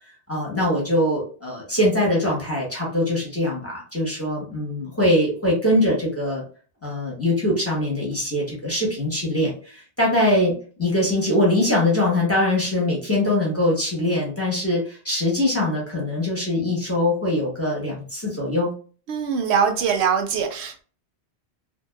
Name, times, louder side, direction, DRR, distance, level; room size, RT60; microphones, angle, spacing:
voice 1, 0.3-6.4 6.8-10.5 10.8-18.7, left 1 dB, 15° left, -4 dB, 1.0 m, -22 dB
voice 2, 19.1-20.8, right 7 dB, 85° right, 4 dB, 0.9 m, -22 dB
2.7 x 2.6 x 2.3 m, 0.40 s
omnidirectional pair, 1.1 m